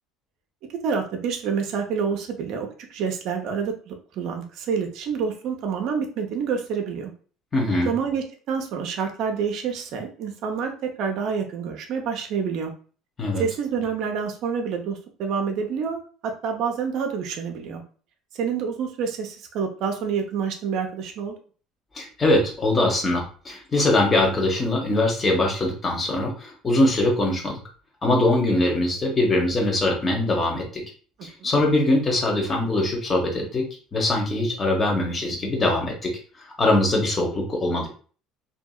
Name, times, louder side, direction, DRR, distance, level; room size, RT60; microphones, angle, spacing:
voice 1, 0.8-7.1 7.8-10.7 11.0-12.7 13.4-16.0 16.4-17.8 18.3-21.3 31.4-31.5, right 6 dB, 65° right, 4 dB, 0.6 m, -28 dB
voice 2, 7.5-7.9 13.2-13.4 21.9-27.6 28.0-30.8 31.2-33.7 33.9-36.1 36.4-37.9, left 2 dB, 30° left, 0 dB, 1.1 m, -22 dB
2.7 x 2.7 x 2.3 m, 0.41 s
hypercardioid pair, 80°, 0 cm